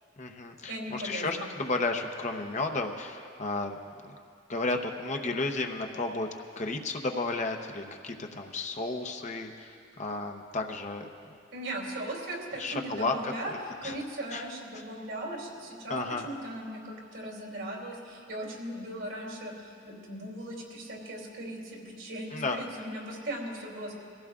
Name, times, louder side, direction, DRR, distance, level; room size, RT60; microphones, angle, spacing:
voice 1, 0.2-3.8 4.0-4.2 4.5-6.3 6.6-11.1 12.6-13.3 13.8-13.9 14.3-14.4 15.9-16.3 22.3-22.6, left 3 dB, 40° left, 4 dB, 0.8 m, -33 dB
voice 2, 0.7-1.5 11.5-13.5 13.8-16.0 16.2-24.0, right 1 dB, 80° right, -2 dB, 2.9 m, -38 dB
22.0 x 15.5 x 2.4 m, 2.3 s
head